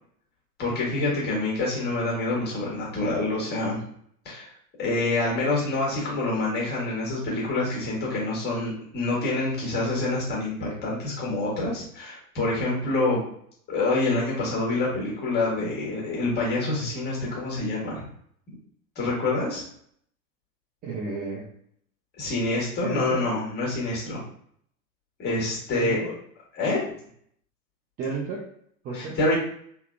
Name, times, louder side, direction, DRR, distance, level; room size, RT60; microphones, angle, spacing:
voice 1, 0.6-3.8 4.2-4.5 4.8-13.2 13.7-18.1 18.9-19.6 22.2-24.2 25.2-26.0 26.6-26.8 28.9-29.3, left 2 dB, 20° left, -4 dB, 1.5 m, -26 dB
voice 2, 20.8-21.5 22.8-23.2 25.7-26.1 28.0-28.5 28.8-29.2, right 3 dB, 20° right, -4 dB, 0.5 m, -32 dB
3.4 x 2.1 x 2.5 m, 0.65 s
figure-of-eight pair, 100°, 44 cm